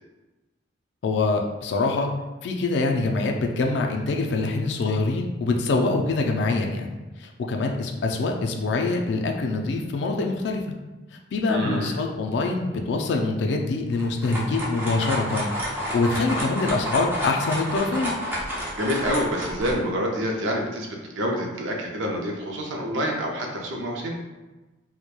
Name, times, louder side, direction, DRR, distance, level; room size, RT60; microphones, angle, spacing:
voice 1, 1.0-2.1 2.4-10.6 11.3-15.5 15.9-18.1, left 3 dB, 65° left, 2 dB, 0.3 m, -25 dB
voice 2, 11.5-12.0 18.8-20.9 21.2-24.2, equal, 90° right, 1 dB, 0.5 m, -27 dB
sound 1, 13.9-19.8, equal, 10° right, 0.5 m, -30 dB
2.9 x 2.1 x 2.2 m, 1.1 s
head